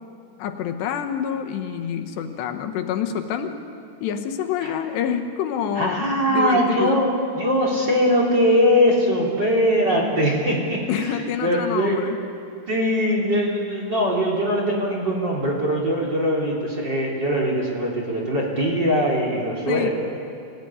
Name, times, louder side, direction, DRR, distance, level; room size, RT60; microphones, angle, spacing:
voice 1, 0.4-3.6 4.0-7.0 10.9-12.2 19.7-19.9, left 8 dB, 80° left, 6 dB, 3.2 m, -27 dB
voice 2, 5.8-12.0 12.7-19.9, equal, 25° right, -2 dB, 3.5 m, -21 dB
25.0 x 17.0 x 9.8 m, 2.4 s
omnidirectional pair, 5.0 m